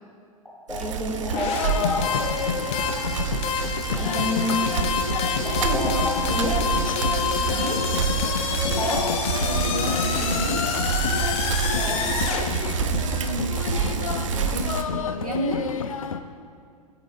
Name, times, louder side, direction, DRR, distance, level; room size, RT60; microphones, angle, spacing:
voice 1, 0.7-2.2 4.0-4.6 5.4-6.6 8.8-9.0 11.8-12.1, left 1 dB, 5° left, -6 dB, 2.3 m, -28 dB
Bicycle, 0.7-14.8, right 7 dB, 60° right, 0.8 m, -28 dB
sound 1, 1.3-12.4, left 7 dB, 35° left, 1.2 m, -28 dB
sound 2, 1.6-16.2, left 7 dB, 70° left, 0.7 m, -30 dB
voice 2, 7.5-7.9 9.3-10.7 12.8-15.7, right 1 dB, 80° right, 1 dB, 1.7 m, -32 dB
23.0 x 9.1 x 2.2 m, 2.2 s
figure-of-eight pair, 95°, 18 cm